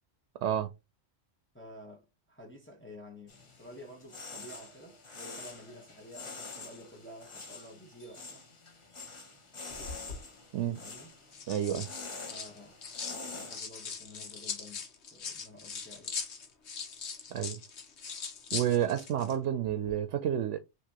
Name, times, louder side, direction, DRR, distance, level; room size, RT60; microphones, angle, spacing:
voice 1, 1.5-8.5 10.8-11.1 12.3-12.9 13.3-16.2, left 1 dB, 10° left, 1.0 m, -51 dB
sound 1, 3.3-13.6, left 3 dB, 30° left, 0.8 m, -46 dB
sound 2, 9.7-10.2 11.1-13.2 13.5-19.4 19.6-19.9, left 5 dB, 70° left, 1.3 m, -41 dB
voice 2, 11.5-11.9 17.3-17.6 18.5-20.6, right 10 dB, 85° right, 0.9 m, -30 dB
6.0 x 3.0 x 2.8 m
omnidirectional pair, 1.2 m